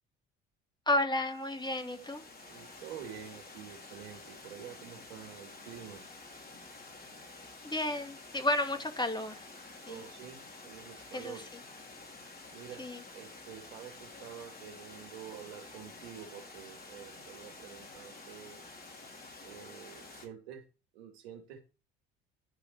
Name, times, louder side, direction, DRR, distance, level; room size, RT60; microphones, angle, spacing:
voice 1, 0.9-2.2 7.6-9.4 9.9-10.0 11.1-11.4 12.8-13.0, left 1 dB, 15° left, 2.2 m, -32 dB
Water, 1.1-20.3, left 3 dB, 30° left, 4.3 m, -50 dB
voice 2, 2.5-6.0 9.9-11.4 12.5-18.6 19.4-20.6 20.9-21.6, right 9 dB, 80° right, 2.9 m, -48 dB
11.5 x 5.2 x 6.9 m
hypercardioid pair, 60°, 30 cm